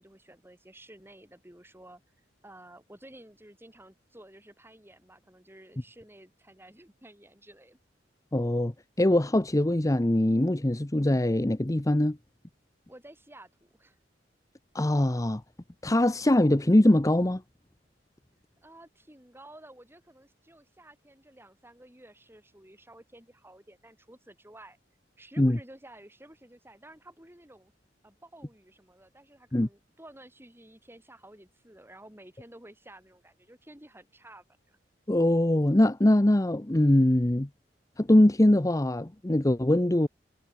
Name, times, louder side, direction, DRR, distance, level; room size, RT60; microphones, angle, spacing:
voice 1, 0.0-2.0 2.4-7.8 12.9-14.0 18.6-24.8 25.2-27.7 28.0-34.8, right 1 dB, 15° right, 7.2 m, -52 dB
voice 2, 8.3-12.2 14.7-15.4 15.8-17.4 25.4-25.6 29.5-29.7 35.1-37.5 38.0-40.1, left 1 dB, 20° left, 0.8 m, -22 dB
head